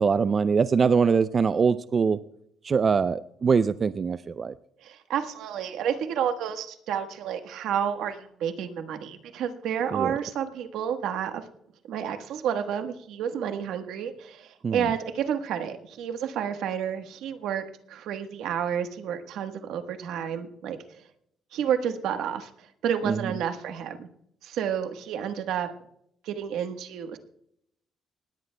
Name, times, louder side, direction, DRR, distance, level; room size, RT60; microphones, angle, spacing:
voice 1, 0.0-2.2 2.6-4.5 9.9-10.2 14.6-14.9 23.0-23.3, right 5 dB, 40° right, 13 dB, 0.4 m, -23 dB
voice 2, 4.8-11.4 11.9-20.8 21.5-22.5 22.8-24.1 24.4-25.7 26.2-27.2, right 8 dB, 85° right, 7 dB, 1.2 m, -30 dB
19.0 x 17.0 x 2.2 m, 0.73 s
cardioid pair, 90°, 0 cm